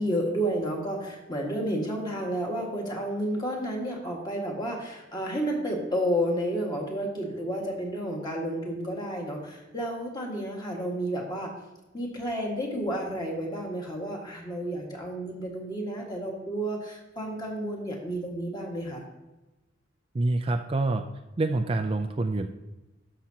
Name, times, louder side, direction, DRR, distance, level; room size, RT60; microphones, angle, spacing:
voice 1, 0.0-11.5 11.9-19.0, equal, 25° left, -1 dB, 1.8 m, -31 dB
voice 2, 20.1-21.0 21.4-22.5, right 2 dB, 30° right, 5 dB, 0.4 m, -26 dB
13.0 x 5.9 x 2.9 m, 1.0 s
head